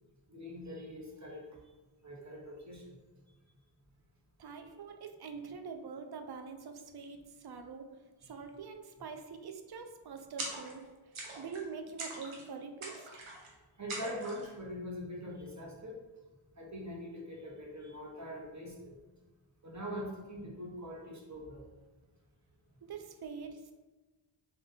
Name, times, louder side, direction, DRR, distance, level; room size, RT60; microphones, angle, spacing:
voice 1, 0.3-1.4 2.0-2.9 4.6-4.7 8.2-8.3 13.8-15.9 16.6-18.9 19.6-21.6, equal, 35° right, -2 dB, 1.0 m, -43 dB
voice 2, 4.4-7.9 8.2-10.9 11.4-13.1 22.8-23.7, right 5 dB, 50° right, 6 dB, 0.5 m, -44 dB
sound 1, 10.4-10.9 11.1-11.7 12.0-12.5 12.8-13.5 13.9-14.5, right 2 dB, 80° right, 0.9 m, -42 dB
3.6 x 2.5 x 4.0 m, 1.2 s
wide cardioid pair, 80°, 49 cm